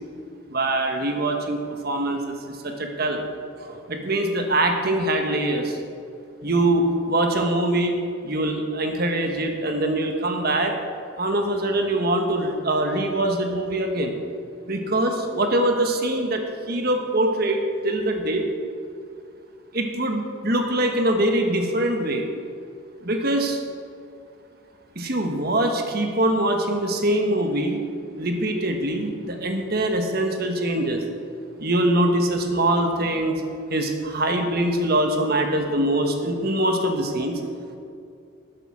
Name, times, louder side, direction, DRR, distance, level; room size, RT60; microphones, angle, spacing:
voice 1, 0.5-3.2 3.6-5.8 6.4-8.0 8.2-10.7 11.2-14.1 14.7-18.5 19.7-22.3 23.0-23.6 24.9-27.8 28.2-31.0 31.6-33.4 33.7-37.4, right 1 dB, 50° right, 4 dB, 1.3 m, -23 dB
12.5 x 10.0 x 6.2 m, 2.5 s
head